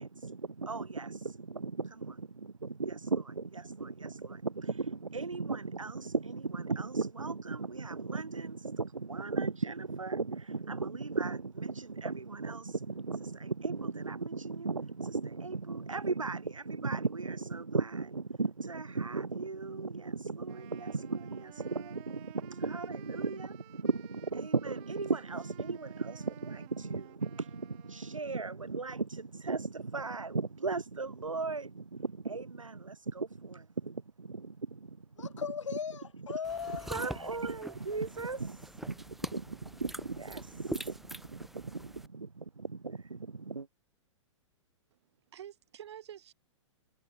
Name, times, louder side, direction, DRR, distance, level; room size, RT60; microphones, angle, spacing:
voice 1, 0.0-35.4 36.3-36.4 36.9-43.7, right 4 dB, 80° right, 1.7 m, -36 dB
Wind instrument woodwind instrument, 20.5-28.6, right 29 dB, 35° right, 4.0 m, -55 dB
voice 2, 35.2-37.4, left 6 dB, 70° left, 1.9 m, -38 dB
sound 1, 36.4-42.1, right 1 dB, ahead, 2.1 m, -45 dB
voice 3, 44.9-46.3, right 10 dB, 60° right, 4.9 m, -49 dB
figure-of-eight pair, 110°, 16 cm